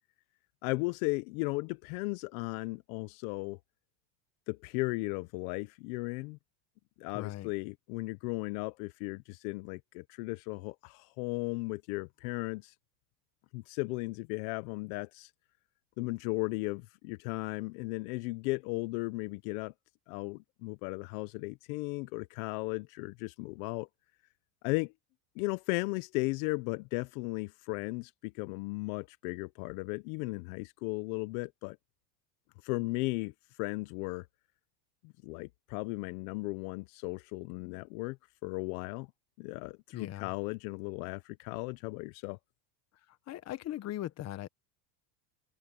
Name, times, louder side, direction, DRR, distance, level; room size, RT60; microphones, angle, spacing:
voice 1, 0.6-3.6 4.5-6.4 7.0-12.7 13.5-15.3 16.0-19.7 20.1-23.9 24.6-24.9 25.4-31.8 32.6-34.3 35.0-38.2 38.4-39.1 39.4-42.4, left 25 dB, 60° left, 0.8 m, -36 dB
voice 2, 7.1-7.5 39.9-40.3 43.3-44.5, left 13 dB, 30° left, 1.1 m, -39 dB
supercardioid pair, 140°, 48 cm